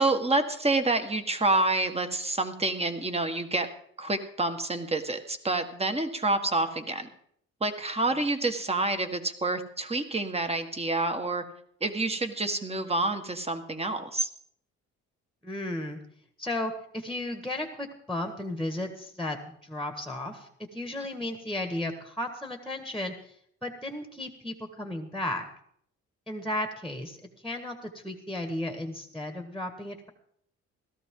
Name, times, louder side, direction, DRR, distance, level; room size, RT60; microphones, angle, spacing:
voice 1, 0.0-3.7 4.0-7.1 7.6-11.4 11.8-14.3, right 2 dB, 20° right, 7 dB, 1.6 m, -28 dB
voice 2, 15.4-16.0 16.4-23.3 23.6-25.4 26.3-27.2 27.4-30.1, left 1 dB, ahead, 5 dB, 1.7 m, -34 dB
17.0 x 13.5 x 3.8 m, 0.66 s
cardioid pair, 90°, 30 cm